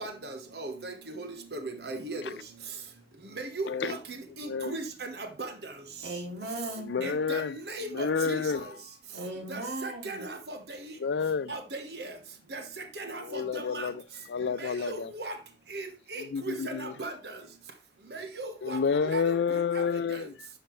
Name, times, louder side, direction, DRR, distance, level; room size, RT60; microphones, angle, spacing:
voice 1, 0.0-2.2 3.4-4.0 4.4-5.1 5.4-5.5 7.0-7.4 7.7-8.4 9.5-10.6 10.8-10.9 11.5-12.1 12.5-12.6 13.0-13.9 14.6-15.3 15.7-15.9 16.1-17.1 18.1-18.8 19.1-19.3 19.7-19.8, right 2 dB, 60° right, 1.2 m, -37 dB
voice 2, 3.7-4.0 4.4-4.8 6.8-7.6 7.9-8.7 11.0-11.5 13.2-14.0 14.3-15.1 16.2-16.9 18.6-20.5, left 5 dB, 75° left, 0.4 m, -29 dB
voice 3, 6.0-7.1 9.1-10.2, right 1 dB, 80° right, 2.8 m, -37 dB
10.5 x 5.7 x 3.2 m
head